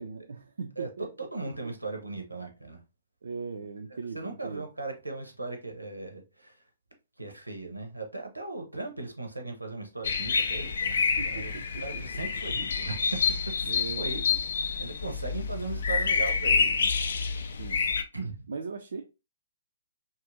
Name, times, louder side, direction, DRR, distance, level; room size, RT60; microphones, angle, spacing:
voice 1, 0.0-1.1 1.6-1.7 3.2-4.7 10.9-12.0 13.7-14.1 17.6-17.9 18.5-19.0, right 4 dB, 65° right, 0.3 m, -39 dB
voice 2, 1.2-2.8 4.1-6.6 7.2-10.9 11.2-11.5 11.8-13.0 13.6-14.2 14.8-17.2 18.1-18.5, right 3 dB, 90° right, 0.7 m, -38 dB
sound 1, 10.0-18.0, left 5 dB, 60° left, 0.3 m, -28 dB
2.7 x 2.5 x 2.6 m
figure-of-eight pair, 125°, 0 cm